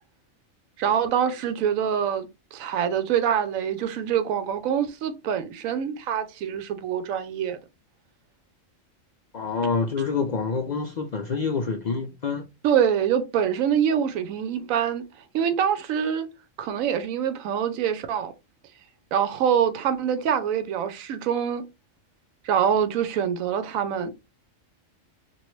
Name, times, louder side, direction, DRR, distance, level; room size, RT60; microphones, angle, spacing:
voice 1, 0.8-7.6 12.6-15.0 15.3-16.3 16.6-18.3 19.1-21.7 22.4-24.1, right 8 dB, 90° right, 1.0 m, -25 dB
voice 2, 9.3-12.5, left 5 dB, 85° left, 0.3 m, -27 dB
3.0 x 2.5 x 3.1 m
omnidirectional pair, 1.4 m